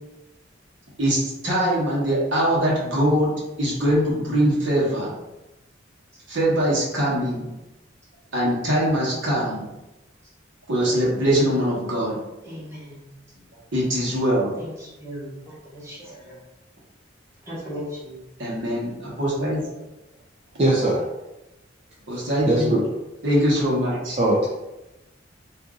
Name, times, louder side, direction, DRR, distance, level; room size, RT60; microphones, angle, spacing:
voice 1, 1.0-3.3 3.6-5.1 6.3-7.5 8.3-9.6 10.7-12.2 13.7-14.5 16.1-16.2 18.4-19.7 22.1-22.7 23.2-24.2, equal, 80° right, -6 dB, 1.3 m, -22 dB
voice 2, 12.5-13.1 14.6-16.3 17.5-18.2, equal, 15° right, -8 dB, 1.1 m, -37 dB
voice 3, 20.6-21.0 22.5-22.8 24.2-24.4, right 1 dB, 35° right, -6 dB, 0.5 m, -20 dB
2.6 x 2.6 x 3.6 m, 0.98 s
head